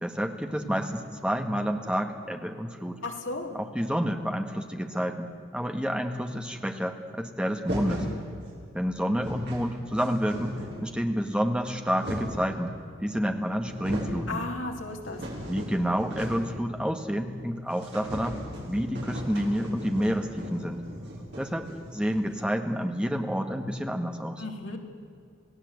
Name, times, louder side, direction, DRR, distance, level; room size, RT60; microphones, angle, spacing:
voice 1, 0.0-3.0 3.5-8.1 8.7-12.7 13.0-14.4 15.5-18.4 18.7-20.8 21.4-24.4, equal, 5° right, 5 dB, 1.6 m, -29 dB
voice 2, 3.0-3.6 14.3-15.2 24.4-24.8, left 2 dB, 65° left, 2 dB, 3.0 m, -34 dB
sound 1, 7.6-8.2 8.8-8.9 9.1-9.6 10.0-10.9 11.5-12.5 13.2-13.3 13.6-14.2 14.6-16.6 16.8-16.9 17.3-17.4 17.7-22.2, equal, 55° right, 6.6 m, -37 dB
28.5 x 18.0 x 8.1 m, 2.4 s
head